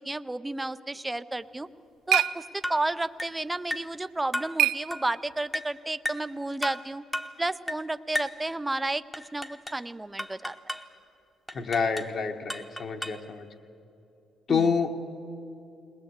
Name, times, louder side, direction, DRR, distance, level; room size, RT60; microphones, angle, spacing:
voice 1, 0.0-1.7 2.1-7.0 7.4-9.0 9.3-10.8 14.5-14.7, right 2 dB, 10° right, 13 dB, 0.5 m, -32 dB
sound 1, 1.3-5.6, right 13 dB, 85° right, 0.5 m, -31 dB
sound 2, 2.1-2.4 2.6-2.9 3.2-3.4 3.7-3.9 4.3-4.6 4.9-5.1 5.5-5.8 6.1-6.3 6.6-6.9 7.1-7.4 7.7-7.9 8.1-8.4 9.1-9.9 10.2-10.9 11.5-12.2 12.5-13.3, equal, 5° left, 0.9 m, -34 dB
voice 2, 11.5-13.5 14.5-14.9, left 5 dB, 45° left, 5 dB, 1.3 m, -27 dB
21.0 x 19.5 x 8.1 m, 3.0 s
cardioid pair, 140°, 0 cm